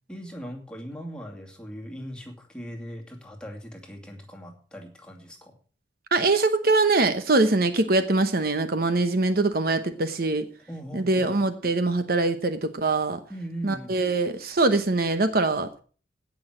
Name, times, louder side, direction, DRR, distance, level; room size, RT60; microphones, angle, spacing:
voice 1, 0.1-5.6 10.7-11.3 13.3-13.9, equal, 5° left, 1 dB, 2.4 m, -39 dB
voice 2, 6.1-10.5 10.9-13.2 13.6-15.7, right 3 dB, 55° right, 9 dB, 1.0 m, -23 dB
17.0 x 6.3 x 6.1 m, 0.41 s
head